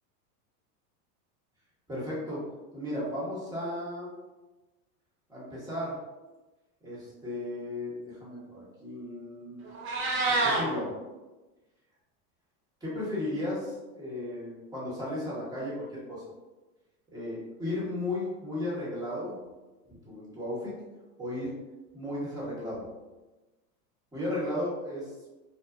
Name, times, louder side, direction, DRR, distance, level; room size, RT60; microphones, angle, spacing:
voice 1, 1.9-2.4 2.7-4.1 5.3-5.9 6.8-9.6 10.3-10.9 12.8-16.2 17.1-19.4 19.9-20.7 21.2-21.6 21.9-22.8 24.1-25.1, left 1 dB, 10° right, -8 dB, 1.2 m, -35 dB
Meow, 9.6-10.6, right 2 dB, 25° right, 0.6 m, -27 dB
2.5 x 2.3 x 2.3 m, 1.1 s
hypercardioid pair, 110°, 47 cm